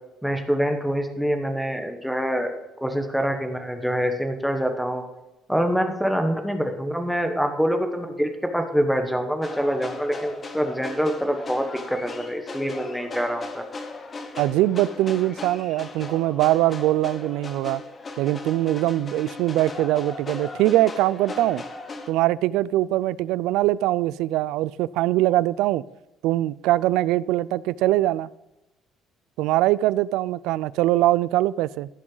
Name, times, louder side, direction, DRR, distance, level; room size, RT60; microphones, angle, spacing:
voice 1, 0.2-2.5 2.8-5.0 5.5-13.6, equal, ahead, 1.1 m, -25 dB
sound 1, 9.4-22.1, left 3 dB, 25° left, 1.0 m, -37 dB
voice 2, 14.4-17.8 18.2-21.6 22.1-25.8 26.2-28.3 29.4-31.9, right 15 dB, 90° right, 0.3 m, -22 dB
15.0 x 6.2 x 3.9 m
cardioid pair, 170°, 0 cm